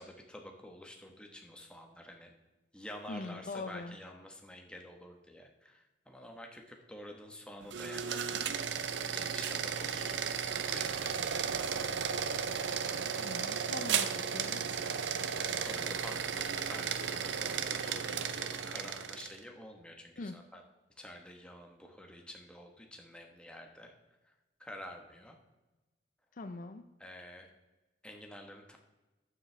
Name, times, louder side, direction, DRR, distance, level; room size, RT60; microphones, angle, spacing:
voice 1, 0.0-2.3 2.7-8.5 9.1-12.0 15.4-20.6 21.0-23.9 24.2-24.3 24.6-25.4 27.0-27.5 28.0-28.8, left 1 dB, 5° left, 2 dB, 1.2 m, -49 dB
voice 2, 3.1-4.0 13.2-14.7 20.2-20.4 26.3-26.9, left 3 dB, 50° left, 8 dB, 0.5 m, -42 dB
sound 1, 7.6-19.4, right 7 dB, 90° right, 0.6 m, -34 dB
12.5 x 7.3 x 3.3 m, 1.1 s
head